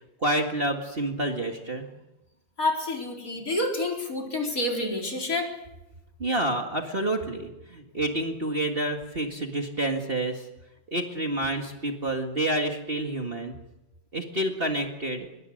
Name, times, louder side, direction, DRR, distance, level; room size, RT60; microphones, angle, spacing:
voice 1, 0.2-1.9 6.2-10.5 10.9-13.5 14.1-15.3, right 1 dB, 30° right, 3 dB, 2.0 m, -28 dB
voice 2, 2.6-5.5, left 2 dB, 45° left, 1 dB, 4.5 m, -28 dB
25.5 x 22.0 x 6.5 m, 0.97 s
omnidirectional pair, 2.1 m